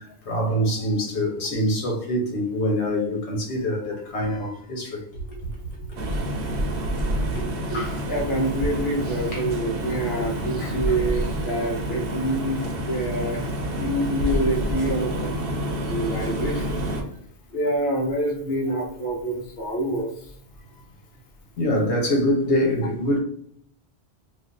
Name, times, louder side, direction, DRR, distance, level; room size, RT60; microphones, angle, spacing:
voice 1, 0.3-5.0 9.3-9.4 21.6-23.2, equal, 85° left, 1.2 m, -24 dB
sound 1, 6.0-17.0, right 1 dB, 60° right, 0.9 m, -28 dB
voice 2, 7.7-13.5 13.8-16.8 17.5-20.1, right 1 dB, 65° left, 1.0 m, -27 dB
2.5 x 2.5 x 3.8 m
omnidirectional pair, 1.1 m